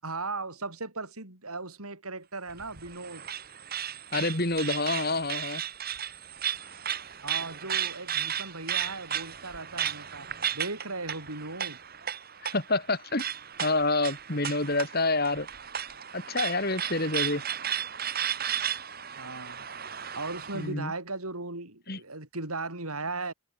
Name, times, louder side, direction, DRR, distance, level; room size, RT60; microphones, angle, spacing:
voice 1, 0.0-3.3 7.2-11.8 19.2-19.7 20.1-23.3, right 3 dB, 85° right, 6.8 m, -37 dB
sound 1, 2.5-20.7, right 9 dB, 45° right, 3.1 m, -35 dB
voice 2, 4.1-5.6 12.4-13.2 13.6-15.5 16.1-17.4 20.5-20.9 21.9-22.0, left 2 dB, 45° left, 4.0 m, -28 dB
head